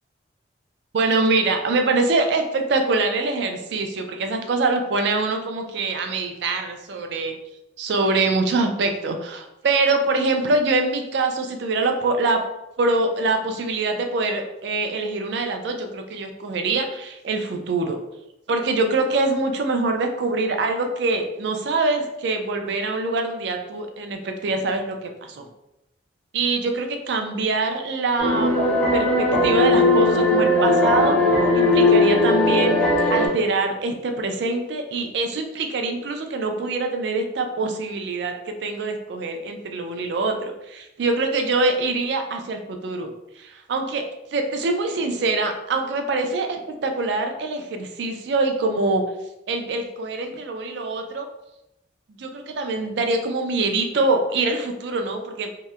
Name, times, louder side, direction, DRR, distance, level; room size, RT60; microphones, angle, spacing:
voice 1, 0.9-7.4 7.8-12.4 12.8-18.0 18.5-25.5 26.3-28.5 28.9-31.2 31.5-32.8 33.1-44.0 44.3-49.0 49.5-51.3 52.1-55.5, right 3 dB, 65° right, 5 dB, 0.3 m, -24 dB
sound 1, 28.2-33.3, left 2 dB, 10° left, 0.6 m, -18 dB
2.7 x 2.0 x 2.3 m, 0.88 s
head